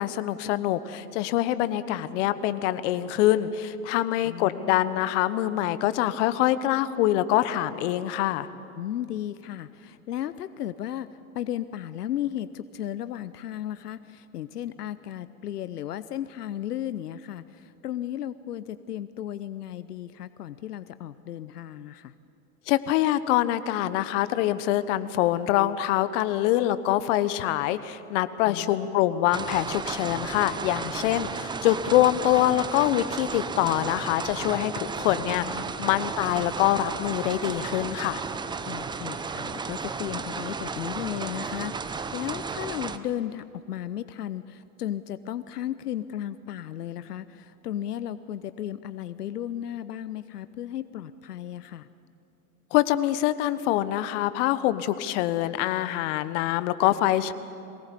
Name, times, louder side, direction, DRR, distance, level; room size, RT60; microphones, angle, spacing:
voice 1, 0.0-8.5 22.7-38.2 52.7-57.3, left 14 dB, 50° left, 13 dB, 1.2 m, -25 dB
voice 2, 4.2-4.9 8.7-22.1 28.4-29.0 35.1-35.7 38.7-51.9, left 11 dB, 85° left, 14 dB, 0.8 m, -35 dB
sound 1, 29.3-43.0, right 5 dB, 10° right, 0.6 m, -34 dB
22.5 x 18.5 x 8.4 m, 2.7 s
hypercardioid pair, 105°, 46 cm